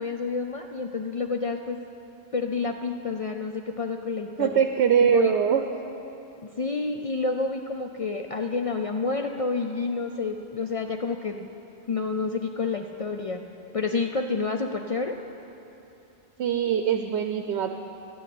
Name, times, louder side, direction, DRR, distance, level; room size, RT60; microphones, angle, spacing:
voice 1, 0.0-1.8 2.3-4.6 5.0-5.3 6.4-11.5 11.9-13.4 13.7-15.1, left 4 dB, 60° left, 4 dB, 0.3 m, -29 dB
voice 2, 4.4-5.6 16.4-17.7, right 8 dB, 90° right, 7 dB, 0.9 m, -22 dB
11.5 x 6.7 x 9.0 m, 2.9 s
omnidirectional pair, 1.1 m